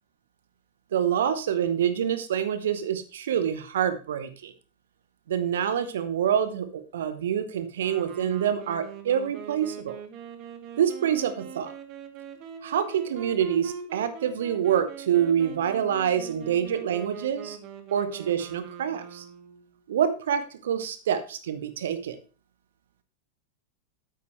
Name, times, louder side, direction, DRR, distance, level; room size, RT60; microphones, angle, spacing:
voice 1, 0.9-4.5 5.3-10.0 10.8-11.7 12.6-17.6 17.9-19.2 19.9-22.2, right 9 dB, 60° right, 12 dB, 0.9 m, -26 dB
sound 1, 7.8-19.6, right 7 dB, 40° right, 1.1 m, -42 dB
8.7 x 8.4 x 3.1 m, 0.36 s
figure-of-eight pair, 90°, 0 cm